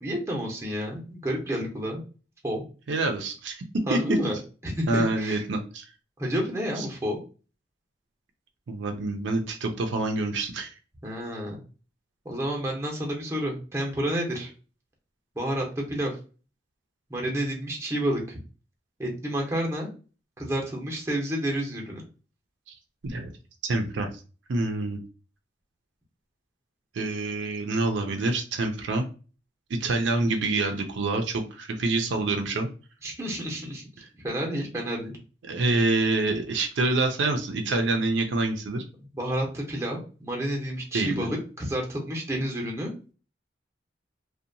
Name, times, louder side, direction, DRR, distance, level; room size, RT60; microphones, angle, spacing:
voice 1, 0.0-2.0 2.4-2.6 3.9-4.4 4.6-5.4 6.2-7.2 11.0-11.6 12.2-14.5 15.4-16.2 17.1-18.4 19.0-19.9 20.4-22.0 33.0-33.8 34.2-35.1 39.1-42.9, equal, 15° right, -1 dB, 0.6 m, -30 dB
voice 2, 2.9-3.6 3.9-4.0 4.9-5.8 6.8-6.9 8.7-10.7 23.0-23.3 23.6-24.1 24.5-25.0 26.9-29.0 29.8-32.7 35.4-38.8 40.9-41.3, right 2 dB, 70° right, 4 dB, 0.4 m, -26 dB
2.7 x 2.2 x 2.6 m, 0.36 s
head